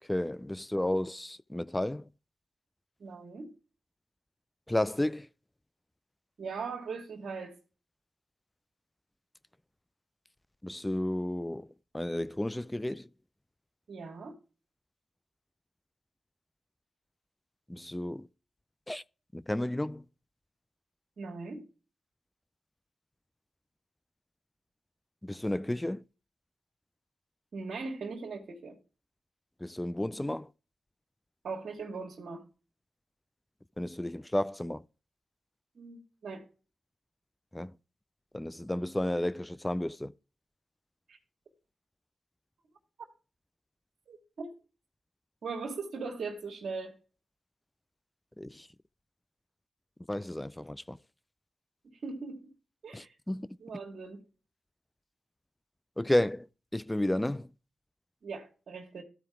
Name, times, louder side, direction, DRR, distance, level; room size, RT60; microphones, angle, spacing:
voice 1, 0.1-2.1 4.7-5.3 10.6-11.7 11.9-13.1 17.7-18.3 18.9-19.0 19.3-20.0 25.2-26.0 29.6-30.5 33.8-34.8 37.5-37.7 38.3-40.1 48.4-48.7 50.1-51.0 52.9-53.5 56.0-56.5 56.7-57.5, left 1 dB, 15° left, 0.3 m, -32 dB
voice 2, 3.0-3.5 6.4-7.6 13.9-14.3 21.2-21.6 27.5-28.8 31.4-32.4 35.7-36.5 41.1-41.2 44.1-44.5 45.4-46.9 51.9-52.5 52.8-53.1 53.6-54.2 58.2-59.0, right 4 dB, 70° right, 1.4 m, -39 dB
13.5 x 4.6 x 3.4 m
cardioid pair, 50°, 0 cm